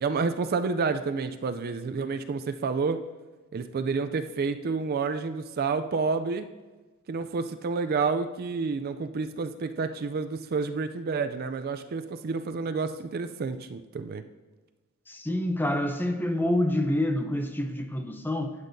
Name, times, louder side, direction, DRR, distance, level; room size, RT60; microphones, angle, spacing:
voice 1, 0.0-3.0 3.5-6.5 7.1-14.2, right 4 dB, 45° right, 0.4 m, -29 dB
voice 2, 15.1-18.5, left 1 dB, 10° left, 0.5 m, -27 dB
12.0 x 8.1 x 2.7 m
head